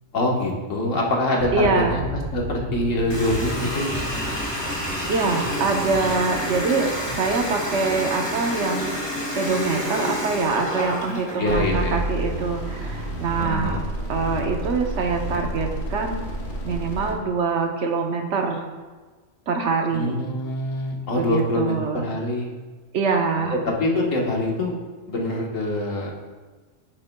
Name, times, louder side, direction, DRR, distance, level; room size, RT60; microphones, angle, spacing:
voice 1, 0.1-3.9 11.4-12.0 13.4-13.9 19.9-22.5 23.5-24.7 25.1-26.1, left 1 dB, 75° left, -1 dB, 1.6 m, -24 dB
sound 1, 1.4-12.9, equal, 20° right, 0.7 m, -37 dB
voice 2, 1.5-2.0 5.1-9.0 9.3-13.8 14.1-16.2 16.6-18.7 19.5-20.2 21.1-22.0 22.9-23.5, right 4 dB, 65° right, 3 dB, 1.1 m, -24 dB
Water tap faucet, 3.1-11.6, left 1 dB, 20° left, 1.4 m, -29 dB
sound 2, 11.5-17.1, right 1 dB, 55° left, 1.5 m, -30 dB
10.5 x 6.5 x 2.2 m, 1.4 s
omnidirectional pair, 1.3 m